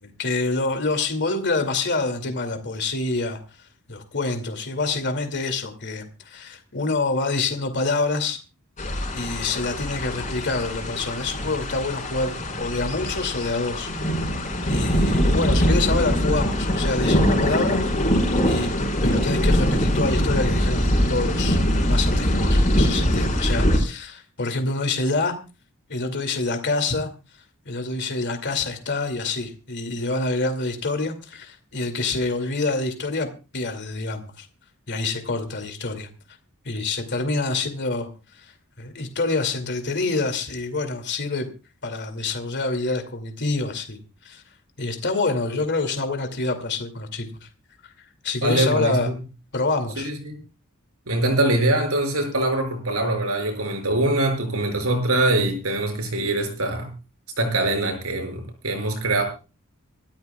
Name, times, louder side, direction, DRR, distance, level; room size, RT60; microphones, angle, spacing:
voice 1, 0.0-3.4 3.9-8.4 9.1-14.3 14.7-18.1 18.5-18.7 19.0-25.3 25.9-27.1 27.7-34.5 34.9-36.1 36.6-41.5 41.8-44.4 44.8-47.5 48.0-49.1 49.5-50.1, left 3 dB, 55° left, 6 dB, 2.4 m, -27 dB
sound 1, 8.8-23.8, equal, 35° left, 4.6 m, -22 dB
voice 2, 48.4-49.1 50.0-50.3 51.1-56.9 57.4-59.2, right 2 dB, 75° right, 4 dB, 5.9 m, -23 dB
25.5 x 13.0 x 2.3 m, 0.32 s
head